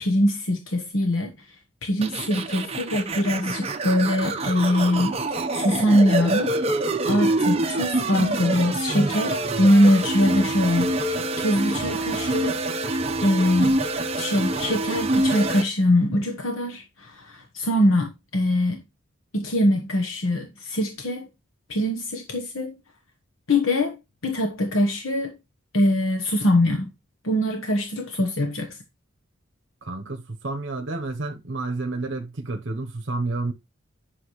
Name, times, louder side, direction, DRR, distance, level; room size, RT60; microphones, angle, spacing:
voice 1, 0.0-1.3 1.8-6.5 7.0-13.8 14.2-18.8 19.3-21.3 21.7-22.7 23.5-24.0 24.2-25.3 25.7-26.9 27.2-28.8, left 1 dB, 90° left, 1.2 m, -23 dB
sound 1, 2.0-15.6, right 2 dB, 30° right, 0.9 m, -26 dB
voice 2, 29.8-33.5, right 2 dB, 65° right, 1.0 m, -30 dB
10.0 x 6.3 x 3.2 m
head